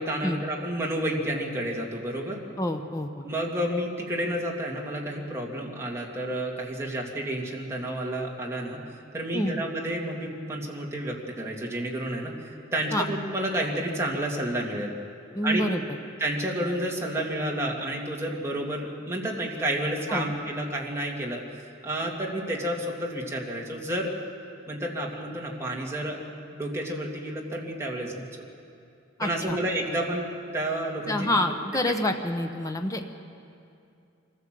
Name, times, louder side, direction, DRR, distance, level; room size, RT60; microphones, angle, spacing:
voice 1, 0.0-2.4 3.2-8.8 9.1-14.9 15.4-15.6 16.2-21.4 21.8-24.1 24.7-26.2 26.5-28.3 29.2-30.3 30.5-31.3, right 1 dB, 15° right, -2 dB, 2.5 m, -30 dB
voice 2, 2.6-3.3 9.3-9.5 12.9-13.1 15.3-15.8 20.1-20.3 29.2-29.6 31.1-33.0, left 1 dB, 15° left, 5 dB, 1.0 m, -27 dB
24.0 x 15.0 x 7.7 m, 2.5 s
head